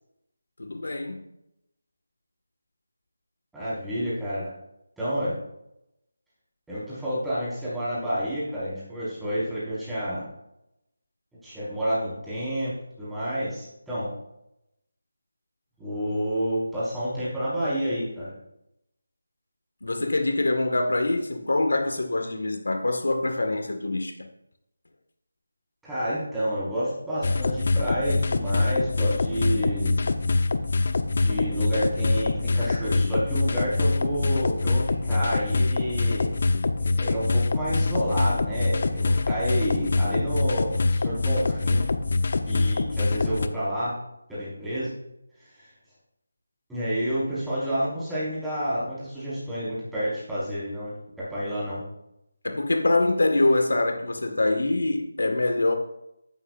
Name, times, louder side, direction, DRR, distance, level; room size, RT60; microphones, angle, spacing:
voice 1, 0.6-1.2 19.8-24.3 52.4-55.7, left 2 dB, 75° left, 1.9 m, -24 dB
voice 2, 3.5-4.5 5.0-5.4 6.7-10.2 11.4-14.1 15.8-18.3 25.8-29.9 31.2-36.3 37.0-41.9 42.5-44.0 44.3-44.9 45.4-45.7 46.7-51.8, equal, 5° right, 5.1 m, -29 dB
sound 1, 27.2-43.5, left 3 dB, 50° left, 0.9 m, -24 dB
14.5 x 13.0 x 2.7 m
figure-of-eight pair, 170°, 0 cm